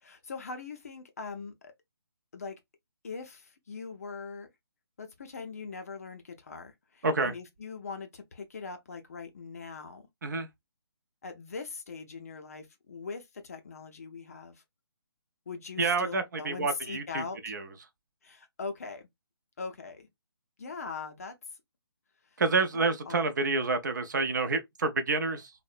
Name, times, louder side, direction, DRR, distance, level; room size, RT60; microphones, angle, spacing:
voice 1, 0.0-1.7 2.3-2.6 3.0-4.5 5.0-10.1 11.2-14.6 15.5-17.4 18.2-19.1 19.6-20.1 20.6-21.3 22.3-22.4 22.7-23.2, left 4 dB, 35° left, 0.4 m, -41 dB
voice 2, 7.0-7.3 10.2-10.5 15.8-17.6 22.4-25.5, right 3 dB, 45° right, 0.5 m, -28 dB
2.6 x 2.0 x 2.3 m
hypercardioid pair, 165°, 13 cm